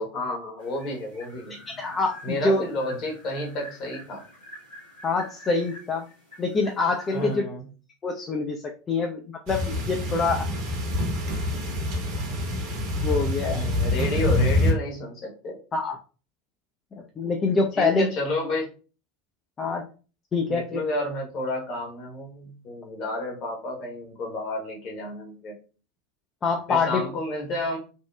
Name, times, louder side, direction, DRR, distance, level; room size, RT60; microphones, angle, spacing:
voice 1, 0.0-1.6 2.2-4.2 7.1-7.6 13.5-15.6 17.7-18.7 20.5-25.6 26.7-27.8, left 1 dB, 40° left, -1 dB, 1.0 m, -31 dB
sound 1, 0.6-7.4, equal, 80° left, 1.2 m, -47 dB
voice 2, 1.8-2.6 5.0-6.1 6.4-7.4 8.0-10.4 13.0-13.7 15.7-16.0 16.9-18.1 19.6-19.8 20.3-20.8 26.4-27.0, left 3 dB, 25° left, 2 dB, 0.3 m, -25 dB
sound 2, 9.5-14.7, left 1 dB, 50° right, 0.9 m, -26 dB
2.8 x 2.1 x 2.2 m, 0.36 s
figure-of-eight pair, 80°, 0 cm